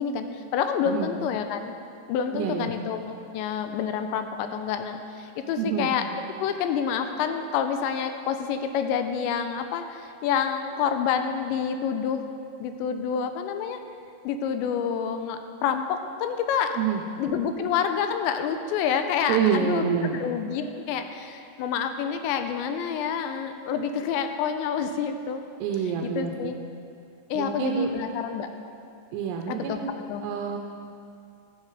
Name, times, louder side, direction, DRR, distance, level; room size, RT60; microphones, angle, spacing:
voice 1, 0.0-1.8 2.1-6.0 6.4-12.2 12.6-13.8 14.2-16.8 17.2-19.9 20.2-25.4 26.0-26.5 27.3-28.5 29.5-29.8 30.1-30.2, left 7 dB, 85° left, 7 dB, 3.0 m, -28 dB
voice 2, 2.3-2.7 5.6-5.9 16.8-17.0 19.3-20.2 25.6-26.6 27.3-27.9 29.1-29.9 30.2-30.6, right 7 dB, 80° right, 2 dB, 2.6 m, -27 dB
15.0 x 12.0 x 4.8 m, 2.5 s
omnidirectional pair, 5.2 m